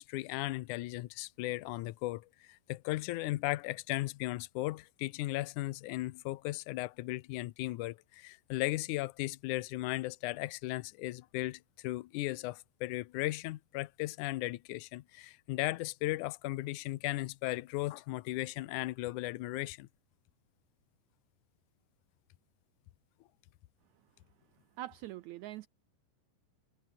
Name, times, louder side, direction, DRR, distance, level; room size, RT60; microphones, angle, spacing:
voice 1, 0.0-19.9, left 18 dB, 75° left, 2.1 m, -36 dB
voice 2, 24.8-25.7, right 15 dB, 90° right, 1.6 m, -43 dB
omnidirectional pair, 3.9 m